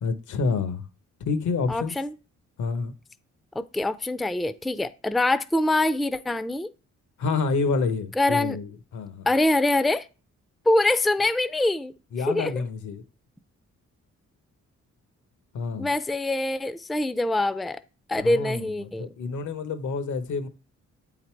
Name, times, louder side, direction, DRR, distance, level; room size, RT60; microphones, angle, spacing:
voice 1, 0.0-0.9 1.2-1.9 2.6-2.9 7.2-9.3 12.1-13.0 15.5-15.9 18.2-18.7 19.0-20.5, left 4 dB, 85° left, 1.1 m, -28 dB
voice 2, 1.7-2.1 3.6-6.7 8.2-8.6 9.3-10.1 10.7-11.9 12.3-12.5 15.8-17.8 18.1-19.1, left 2 dB, ahead, 0.3 m, -24 dB
8.2 x 4.0 x 4.5 m
cardioid pair, 100°, 29 cm